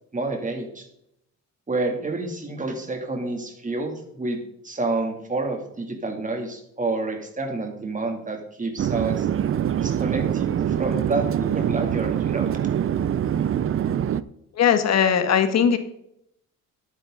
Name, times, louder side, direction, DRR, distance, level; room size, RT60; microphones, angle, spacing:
voice 1, 0.1-0.9 1.7-4.4 4.6-9.3 9.8-10.5 10.8-12.5, right 3 dB, 25° right, 3 dB, 2.8 m, -29 dB
Chatter / Fixed-wing aircraft airplane, 8.8-14.2, right 9 dB, 45° right, 0.6 m, -24 dB
voice 2, 14.6-15.8, left 8 dB, 60° left, 9 dB, 1.5 m, -19 dB
11.0 x 9.2 x 3.9 m, 0.75 s
cardioid pair, 90°, 30 cm